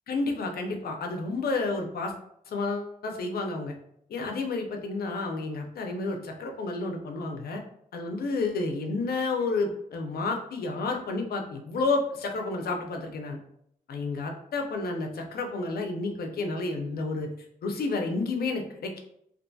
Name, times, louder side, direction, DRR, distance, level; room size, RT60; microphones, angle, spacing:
voice 1, 0.1-2.1 2.5-3.7 4.1-7.6 7.9-13.4 13.9-17.3 17.6-19.0, left 3 dB, 85° left, 3 dB, 0.5 m, -30 dB
2.6 x 2.4 x 2.2 m, 0.72 s
wide cardioid pair, 95°, 16 cm